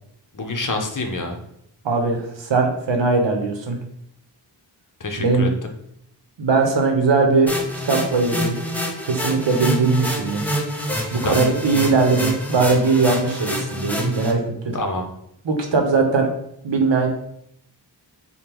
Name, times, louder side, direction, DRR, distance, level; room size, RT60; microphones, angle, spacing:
voice 1, 0.3-1.4 5.0-5.7 11.2-11.3 14.7-15.1, left 2 dB, 45° left, 4 dB, 0.7 m, -26 dB
voice 2, 1.8-3.8 5.2-5.5 6.4-7.5 7.8-8.6 9.0-10.4 11.1-14.4 15.4-16.3 16.6-17.1, right 4 dB, 75° right, 3 dB, 0.8 m, -19 dB
sound 1, 7.5-14.3, equal, 5° left, 0.9 m, -27 dB
3.5 x 2.2 x 4.4 m, 0.73 s
wide cardioid pair, 45°, 44 cm